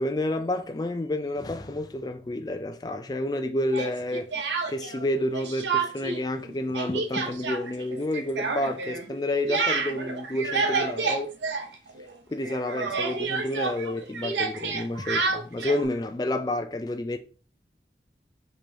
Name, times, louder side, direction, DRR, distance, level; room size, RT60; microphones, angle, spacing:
voice 1, 0.0-4.3 4.7-11.3 12.3-17.2, left 1 dB, 20° left, 0.4 m, -29 dB
Speech, 3.7-5.0 5.3-6.2 6.5-12.2 12.4-15.8, right 4 dB, 90° right, 0.8 m, -29 dB
4.9 x 3.8 x 2.7 m
head